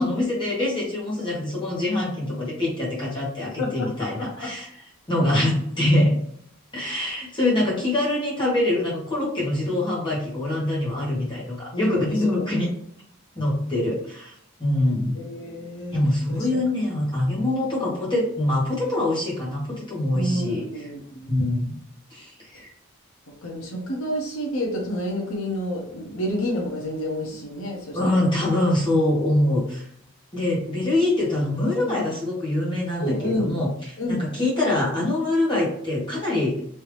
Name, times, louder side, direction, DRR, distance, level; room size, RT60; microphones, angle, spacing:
voice 1, 0.0-4.7 5.1-6.2 6.7-12.7 13.3-14.3 14.6-15.2 15.9-20.8 21.3-21.8 22.1-22.7 27.9-29.8 30.3-36.6, left 1 dB, 20° left, -5 dB, 1.2 m, -24 dB
voice 2, 3.6-4.5 11.7-12.4 15.1-16.0 16.3-16.5 17.8-17.9 20.1-21.4 23.4-28.3 31.8-32.0 33.0-33.6 34.0-34.2, left 1 dB, 75° left, -1 dB, 0.9 m, -29 dB
3.3 x 2.7 x 3.1 m, 0.69 s
head